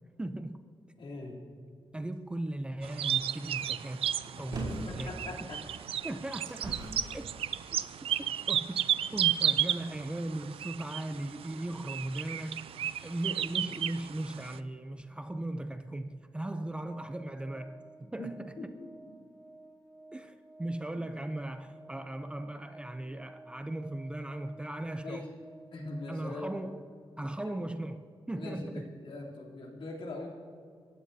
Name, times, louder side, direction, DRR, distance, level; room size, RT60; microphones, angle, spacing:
voice 1, 0.2-0.6 1.9-4.1 4.4-5.1 6.0-6.8 7.1-7.3 8.5-17.8 18.1-18.5 20.1-25.3 26.1-26.8 27.2-28.0 28.3-28.9, right 1 dB, 10° right, 0.5 m, -38 dB
voice 2, 1.0-1.5 4.3-5.6 18.2-18.9 25.0-25.4 25.7-26.5 27.4-27.5 28.3-30.3, left 2 dB, 65° left, 3.1 m, -42 dB
sound 1, 2.8-14.6, right 10 dB, 80° right, 0.5 m, -33 dB
sound 2, 4.5-5.0 5.8-7.1 7.9-8.0, right 2 dB, 55° right, 4.9 m, -39 dB
Organ, 16.7-27.4, right 2 dB, 5° left, 5.0 m, -54 dB
28.0 x 15.5 x 2.7 m
wide cardioid pair, 135°, 9 cm